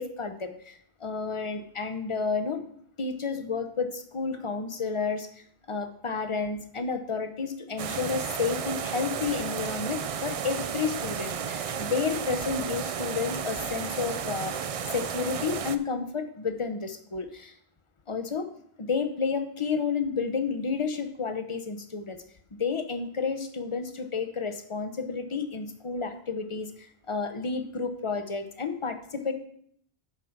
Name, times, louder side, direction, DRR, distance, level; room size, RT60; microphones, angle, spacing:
voice 1, 0.0-2.6 3.0-5.3 5.7-14.5 14.9-17.5 18.1-18.5 18.8-22.2 22.5-29.3, left 5 dB, 35° left, 8 dB, 0.7 m, -31 dB
sound 1, 7.8-15.8, right 7 dB, 55° right, 0.4 m, -33 dB
9.2 x 5.0 x 5.8 m, 0.65 s
omnidirectional pair, 1.0 m